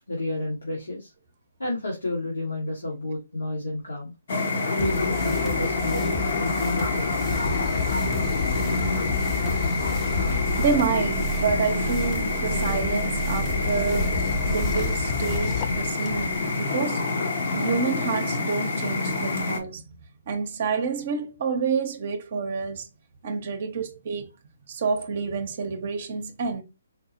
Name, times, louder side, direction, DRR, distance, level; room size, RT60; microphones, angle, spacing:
voice 1, 0.1-1.1 1.6-4.1 4.7-7.1, left 2 dB, 85° left, 1.3 m, -30 dB
sound 1, 4.3-19.6, left 3 dB, 60° left, 0.8 m, -27 dB
sound 2, 4.8-15.4, right 1 dB, 5° left, 0.7 m, -33 dB
sound 3, 7.2-11.3 13.4-16.4, left 5 dB, 30° left, 0.4 m, -31 dB
voice 2, 10.2-14.1 14.5-17.1 17.5-19.9 20.3-22.9 23.2-24.3 24.7-26.6, right 5 dB, 50° right, 0.6 m, -28 dB
4.2 x 2.0 x 2.8 m
hypercardioid pair, 145°, 0 cm